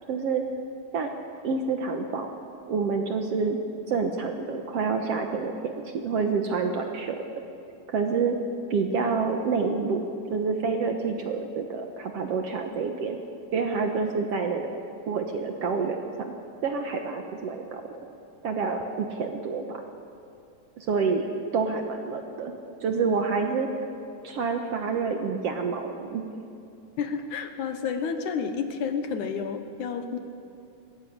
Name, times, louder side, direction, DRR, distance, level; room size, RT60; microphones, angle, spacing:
voice 1, 0.1-0.4 0.9-1.1 1.4-2.3 2.7-3.6 3.9-5.8 6.0-7.2 7.9-8.4 8.7-10.0 10.3-13.2 13.5-14.8 15.1-16.3 16.6-17.8 18.4-19.8 20.8-21.3 21.5-22.5 22.8-23.7 24.2-26.3, right 5 dB, 60° right, 4 dB, 1.8 m, -28 dB
voice 2, 27.0-30.2, left 6 dB, 70° left, 7 dB, 2.6 m, -30 dB
20.5 x 17.5 x 8.6 m, 2.7 s
omnidirectional pair, 3.8 m